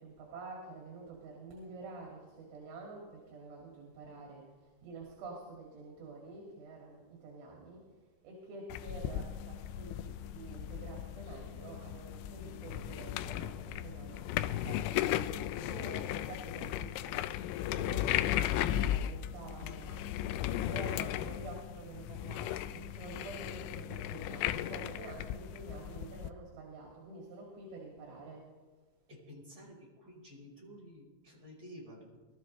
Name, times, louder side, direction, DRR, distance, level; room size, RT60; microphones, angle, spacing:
voice 1, 0.0-7.8 8.2-20.1 20.6-28.4, right 3 dB, 80° right, -2 dB, 4.6 m, -48 dB
sound 1, 8.7-26.3, left 12 dB, 85° left, 2.9 m, -36 dB
voice 2, 29.1-32.3, equal, 20° right, -5 dB, 4.7 m, -52 dB
23.0 x 13.0 x 3.2 m, 1.4 s
omnidirectional pair, 5.5 m